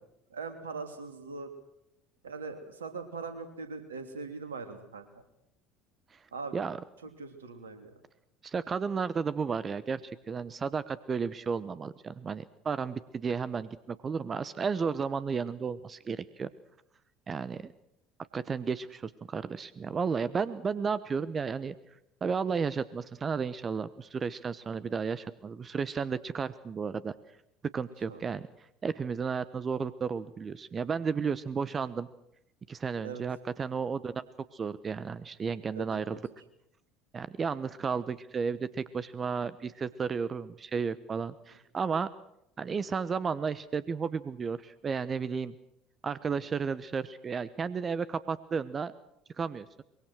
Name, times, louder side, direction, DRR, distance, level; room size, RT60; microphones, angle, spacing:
voice 1, 0.3-1.5 2.2-5.1 6.3-6.7 7.2-7.9 28.1-28.2 33.0-33.2 35.7-35.8 36.1-36.2, right 4 dB, 80° right, 8 dB, 3.2 m, -41 dB
voice 2, 8.4-16.5 17.3-17.7 18.3-21.7 22.2-27.1 27.7-28.5 28.8-32.1 32.7-34.2 34.5-36.2 37.1-42.1 42.6-45.5 46.0-48.9 49.4-49.8, right 5 dB, 30° right, 15 dB, 1.1 m, -33 dB
24.5 x 23.0 x 6.3 m, 0.78 s
figure-of-eight pair, 65°, 0 cm